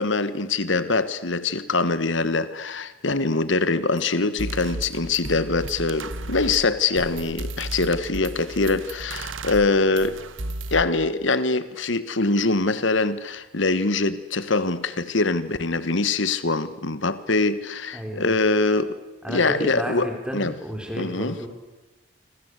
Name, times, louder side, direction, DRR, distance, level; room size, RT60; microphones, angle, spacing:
voice 1, 0.0-10.2 10.7-19.0 19.3-20.5 20.9-21.4, left 3 dB, 70° left, 14 dB, 1.4 m, -23 dB
sound 1, 4.0-4.1 4.4-10.8, right 2 dB, 75° right, 1.6 m, -34 dB
voice 2, 17.9-18.4 19.2-21.5, equal, 5° right, 2 dB, 4.9 m, -32 dB
26.5 x 26.5 x 8.3 m, 1.1 s
head